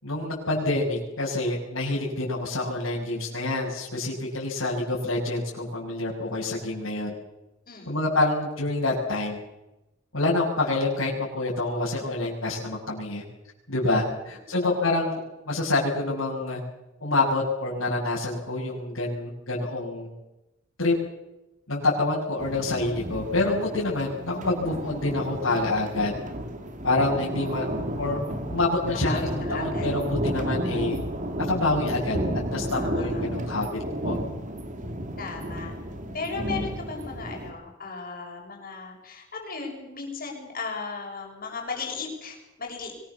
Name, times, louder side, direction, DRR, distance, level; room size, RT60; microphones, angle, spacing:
voice 1, 0.0-7.1 7.9-9.4 10.1-13.2 13.7-15.2 15.5-16.6 17.0-20.1 20.8-21.0 21.7-26.1 26.8-27.7 28.0-28.2 28.5-31.0 31.5-32.2 32.5-33.7 34.0-34.2, left 2 dB, 90° left, -6 dB, 7.0 m, -27 dB
voice 2, 7.7-8.0 14.6-14.9 29.1-29.9 32.7-33.3 35.2-35.7 36.1-42.9, left 4 dB, 45° left, 0 dB, 7.3 m, -36 dB
sound 1, 22.4-37.5, right 1 dB, 40° right, 2.9 m, -32 dB
25.0 x 21.5 x 7.2 m, 0.95 s
head